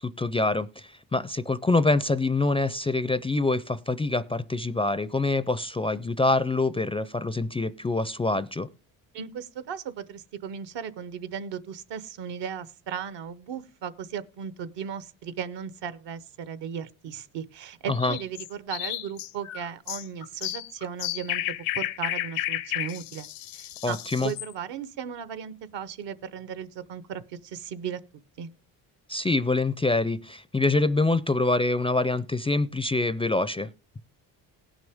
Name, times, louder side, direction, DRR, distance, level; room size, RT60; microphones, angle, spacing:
voice 1, 0.0-8.7 17.9-18.1 23.8-24.3 29.1-33.7, left 2 dB, 15° left, 0.4 m, -25 dB
voice 2, 9.1-23.3 23.5-28.0 28.4-28.5, right 8 dB, 70° right, 1.0 m, -36 dB
sound 1, 17.9-24.5, left 14 dB, 85° left, 0.9 m, -32 dB
18.0 x 6.3 x 3.5 m
supercardioid pair, 65°, 45 cm